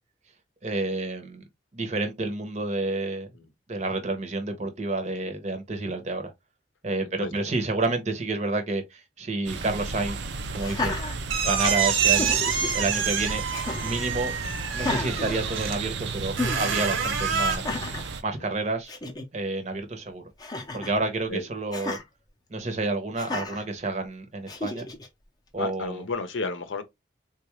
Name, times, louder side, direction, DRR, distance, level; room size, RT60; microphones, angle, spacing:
voice 1, 0.6-1.4 1.7-3.3 3.7-6.3 6.8-10.2 10.5-11.0 11.4-12.4 12.7-13.4 13.8-14.4 14.7-17.9 18.2-18.9 19.3-20.2 20.7-22.0 22.5-24.8 25.5-26.0, right 2 dB, 35° right, 0.7 m, -29 dB
voice 2, 7.0-7.3 18.4-18.5 21.3-21.4 25.6-26.8, left 3 dB, 75° left, 0.6 m, -32 dB
sound 1, 9.5-18.2, right 4 dB, 65° right, 0.5 m, -34 dB
sound 2, 9.7-17.6, right 6 dB, 85° right, 0.8 m, -28 dB
Laughter, 10.6-11.7 12.0-12.7 13.5-14.0 14.7-16.0 16.3-16.6 17.5-18.1 18.6-18.7 18.9-19.3 20.4-21.0 21.7-22.0 23.2-23.6 24.5-25.1, left 2 dB, 20° left, 0.5 m, -33 dB
3.8 x 2.3 x 2.9 m
head